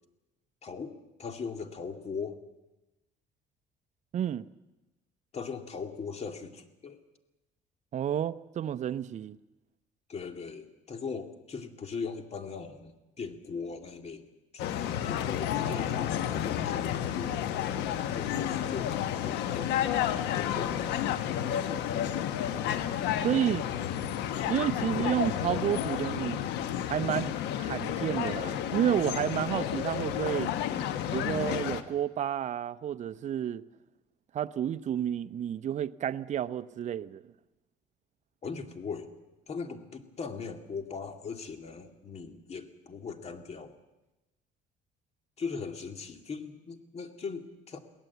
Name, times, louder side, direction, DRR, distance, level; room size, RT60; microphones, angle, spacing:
voice 1, 0.6-2.4 5.3-7.0 10.1-14.2 14.5-17.4 18.1-20.0 20.5-20.9 38.4-39.1 39.5-43.8 45.4-47.8, left 5 dB, 40° left, 2.2 m, -39 dB
voice 2, 4.1-4.4 7.9-9.4 23.2-23.6 24.5-26.4 26.9-30.5 31.1-33.6 34.3-37.2, right 10 dB, 45° right, 0.7 m, -30 dB
sound 1, 14.6-31.8, left 10 dB, 90° left, 1.3 m, -31 dB
23.0 x 17.0 x 8.1 m
cardioid pair, 110°, 17 cm